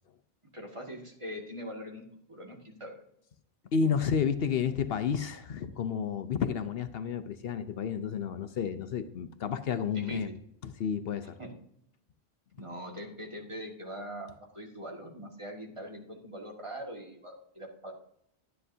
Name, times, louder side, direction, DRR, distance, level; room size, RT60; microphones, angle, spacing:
voice 1, 0.5-2.0 2.3-3.0 9.9-10.3 11.4-11.5 12.6-17.9, equal, 30° right, 0 dB, 2.0 m, -42 dB
voice 2, 3.7-10.3 10.6-11.4, left 6 dB, 70° left, 10 dB, 0.9 m, -31 dB
12.5 x 10.0 x 2.7 m, 0.72 s
omnidirectional pair, 1.1 m